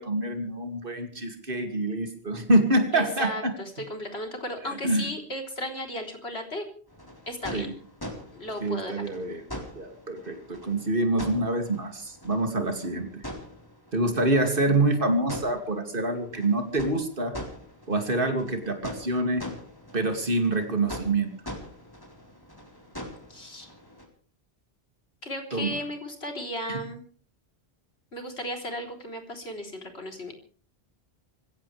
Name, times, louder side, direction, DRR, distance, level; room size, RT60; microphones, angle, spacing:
voice 1, 0.0-3.5 4.8-5.0 7.5-7.7 8.6-9.4 9.7-13.2 13.9-17.4 17.9-19.5 19.9-21.3 25.5-25.7 26.7-26.8, right 2 dB, 60° right, 5 dB, 2.8 m, -26 dB
voice 2, 2.9-6.7 7.3-7.7 8.3-9.0 23.3-23.7 25.2-27.0 28.1-30.3, left 1 dB, 85° left, 3 dB, 4.1 m, -35 dB
sound 1, 6.9-24.1, equal, 20° left, 4.2 m, -43 dB
25.5 x 16.5 x 3.4 m, 0.43 s
omnidirectional pair, 1.0 m